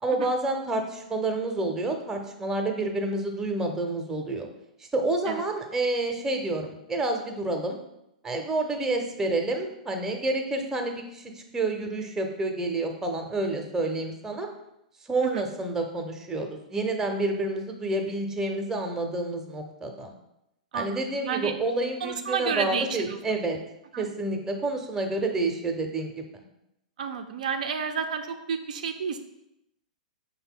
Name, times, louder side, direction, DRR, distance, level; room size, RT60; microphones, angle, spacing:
voice 1, 0.0-4.5 4.9-7.8 8.2-14.5 15.1-20.1 20.7-23.6 24.0-26.2, right 2 dB, 10° right, 3 dB, 0.6 m, -29 dB
voice 2, 20.7-21.5 22.0-23.2 23.9-24.1 27.0-29.2, right 6 dB, 70° right, 6 dB, 0.3 m, -31 dB
5.5 x 2.2 x 3.6 m, 0.84 s
hypercardioid pair, 115°, 4 cm